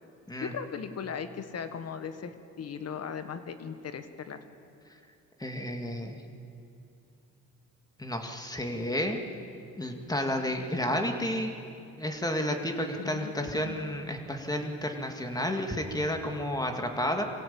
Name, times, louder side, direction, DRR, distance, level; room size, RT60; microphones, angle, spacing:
voice 1, 0.4-4.4 12.9-13.8, left 6 dB, 55° left, 10 dB, 1.5 m, -38 dB
voice 2, 5.4-6.2 8.0-9.2 9.8-11.5 12.0-17.2, left 1 dB, 10° left, 4 dB, 2.3 m, -31 dB
23.5 x 16.5 x 8.7 m, 2.5 s
cardioid pair, 90°, 30 cm